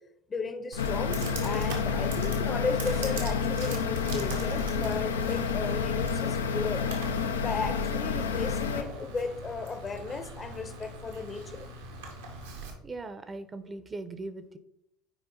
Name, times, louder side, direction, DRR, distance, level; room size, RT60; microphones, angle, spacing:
voice 1, 0.3-6.9 7.4-11.7, left 4 dB, 30° left, 0.8 m, -35 dB
Computer keyboard, 0.7-12.7, right 2 dB, 85° right, 2.0 m, -41 dB
sound 1, 0.8-8.8, left 6 dB, 85° left, 0.6 m, -29 dB
voice 2, 12.8-14.6, right 3 dB, 25° right, 0.8 m, -39 dB
9.3 x 4.7 x 3.8 m
hypercardioid pair, 70°, 0 cm